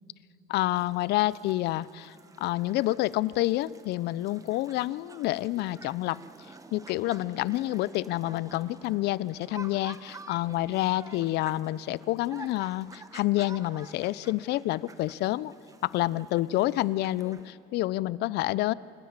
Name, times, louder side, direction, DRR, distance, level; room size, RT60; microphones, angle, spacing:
voice 1, 0.5-6.2 6.7-15.5 15.8-18.7, left 16 dB, 80° left, 20 dB, 0.5 m, -28 dB
sound 1, 0.5-17.5, right 3 dB, 20° right, 1.2 m, -50 dB
28.5 x 13.0 x 8.8 m, 2.8 s
cardioid pair, 110°, 17 cm